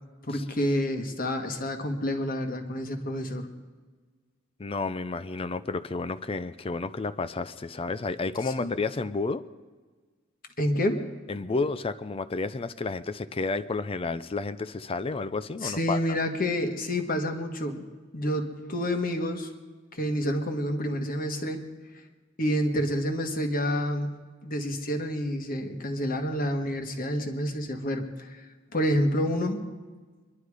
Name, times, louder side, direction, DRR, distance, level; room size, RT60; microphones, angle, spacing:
voice 1, 0.2-3.5 8.6-8.7 10.6-11.0 15.6-17.8 18.1-19.5 19.9-21.6 22.4-24.1 24.4-28.4 28.7-29.6, equal, 45° left, 6 dB, 1.6 m, -28 dB
voice 2, 4.6-9.4 11.3-16.0, left 3 dB, 30° left, 13 dB, 0.5 m, -31 dB
23.5 x 11.5 x 4.9 m, 1.4 s
head